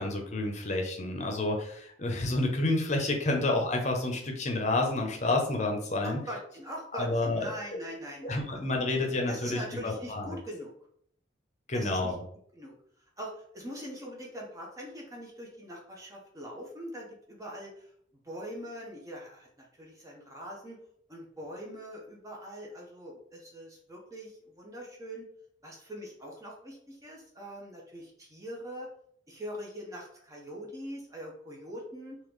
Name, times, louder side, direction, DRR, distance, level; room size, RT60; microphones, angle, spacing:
voice 1, 0.0-6.2 6.9-7.8 8.2-10.4 11.7-12.2, left 2 dB, 40° left, 2 dB, 0.8 m, -29 dB
voice 2, 6.0-8.4 9.3-10.7 11.7-12.1 12.5-12.7 13.2-17.9 18.2-20.8 21.1-25.2 25.6-28.9 29.3-32.2, equal, 20° right, -2 dB, 0.8 m, -42 dB
3.8 x 2.9 x 3.1 m, 0.64 s
head